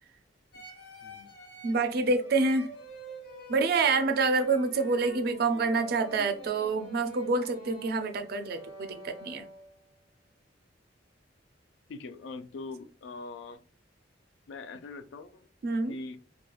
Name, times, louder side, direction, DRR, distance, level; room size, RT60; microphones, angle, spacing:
sound 1, 0.5-9.9, right 1 dB, 55° left, 0.8 m, -47 dB
voice 1, 1.0-1.3 11.9-13.6 14.5-15.5 15.9-16.2, left 3 dB, 75° left, 0.3 m, -42 dB
voice 2, 1.6-2.7 3.5-9.5 15.6-15.9, right 3 dB, 55° right, 0.4 m, -27 dB
2.9 x 2.2 x 2.3 m
head